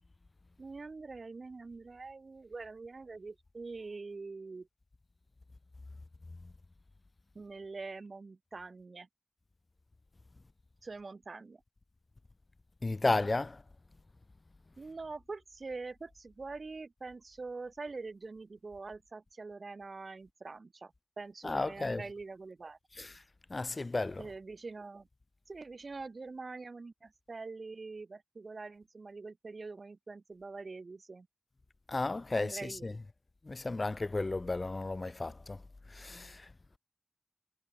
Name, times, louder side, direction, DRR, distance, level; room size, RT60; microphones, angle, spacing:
voice 1, 0.6-4.7 7.3-9.1 10.8-11.6 14.8-23.1 24.2-25.1 25.5-31.3 32.3-32.9, right 3 dB, 85° right, 3.0 m, -44 dB
voice 2, 12.8-13.6 21.4-22.0 23.0-23.1 23.5-24.2 31.9-32.9 33.5-35.6 36.0-36.4, left 2 dB, 55° left, 0.8 m, -33 dB
wide cardioid pair, 70°, 0 cm